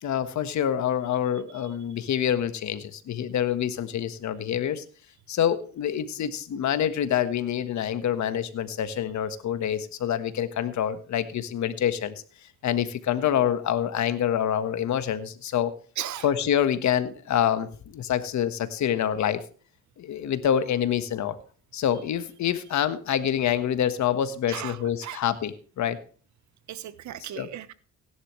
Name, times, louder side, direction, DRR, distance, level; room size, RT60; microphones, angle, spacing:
voice 1, 0.0-4.8 5.3-15.7 16.2-19.4 20.0-21.4 21.7-26.0 27.4-27.5, left 9 dB, 70° left, 11 dB, 1.4 m, -26 dB
voice 2, 16.0-16.3 24.5-25.2 26.7-27.7, right 11 dB, 70° right, 15 dB, 1.1 m, -36 dB
16.5 x 11.0 x 3.2 m, 0.40 s
cardioid pair, 90°, 30 cm